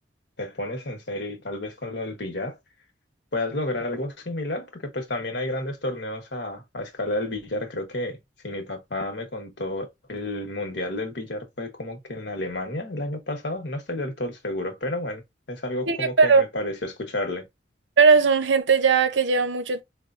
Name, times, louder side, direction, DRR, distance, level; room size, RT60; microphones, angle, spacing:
voice 1, 0.4-2.6 3.3-8.2 8.4-15.2 15.5-17.4, left 1 dB, 65° left, 1.1 m, -31 dB
voice 2, 15.9-16.4 18.0-19.8, right 5 dB, 85° right, 0.7 m, -18 dB
4.9 x 2.2 x 2.5 m
head